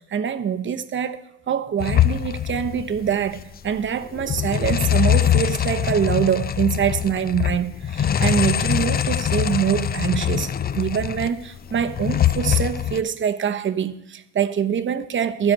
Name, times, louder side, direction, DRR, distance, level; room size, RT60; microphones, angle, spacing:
voice 1, 0.1-15.5, right 8 dB, 35° right, 0.8 m, -24 dB
sound 1, 1.8-3.4 3.7-3.8 4.1-11.3 11.7-13.0, left 10 dB, 30° left, 0.5 m, -23 dB
14.5 x 6.0 x 5.3 m
cardioid pair, 105°, 33 cm